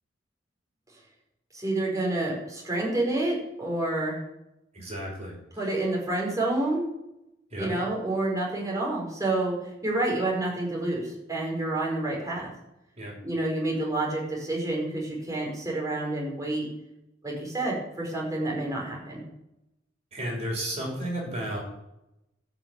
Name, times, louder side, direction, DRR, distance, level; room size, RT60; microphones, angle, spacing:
voice 1, 1.5-4.2 5.6-6.8 7.6-12.5 13.2-16.7 17.2-19.2, right 2 dB, 20° right, -3 dB, 4.8 m, -28 dB
voice 2, 4.7-5.3 7.5-7.7 13.0-13.1 20.1-21.6, right 1 dB, 35° right, -2 dB, 5.8 m, -32 dB
13.0 x 6.2 x 8.3 m, 0.87 s
head